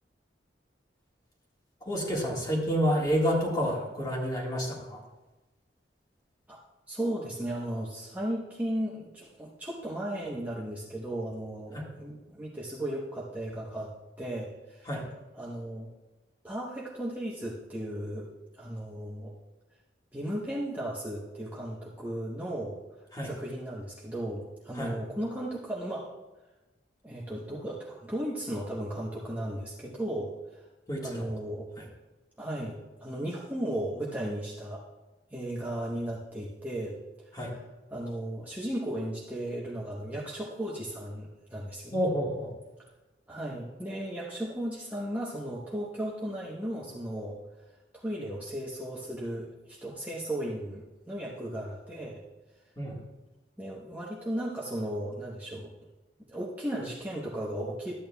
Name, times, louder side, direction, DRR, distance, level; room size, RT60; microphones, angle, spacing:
voice 1, 1.8-5.0 11.7-11.8 14.9-15.1 23.1-23.3 24.7-25.0 30.9-31.3 31.8-31.9 37.3-37.5 41.9-42.5 52.8-53.0, equal, 20° left, -2 dB, 1.7 m, -29 dB
voice 2, 6.9-13.9 14.2-14.9 15.3-15.9 16.4-19.3 20.1-22.8 23.2-26.1 27.0-30.7 31.0-31.7 32.4-34.8 35.3-37.0 37.3-37.4 37.9-42.0 43.3-47.4 47.9-52.2 53.6-55.7 56.3-57.9, right 1 dB, 10° right, -5 dB, 0.9 m, -35 dB
12.5 x 8.7 x 2.2 m, 1.1 s
head